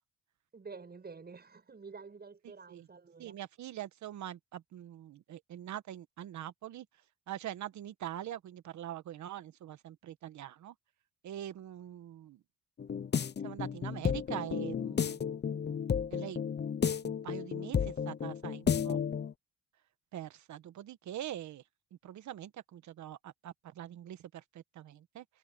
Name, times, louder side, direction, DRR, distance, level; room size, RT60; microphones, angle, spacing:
voice 1, 0.5-3.4, right 4 dB, 30° right, 8.0 m, -49 dB
voice 2, 3.2-6.9 7.3-10.7 11.2-12.4 13.4-15.2 16.1-16.4 16.8-19.0 20.1-21.6 22.0-25.2, right 11 dB, 70° right, 1.3 m, -43 dB
sound 1, 12.8-19.3, left 7 dB, 35° left, 0.8 m, -33 dB
cardioid pair, 90°, 30 cm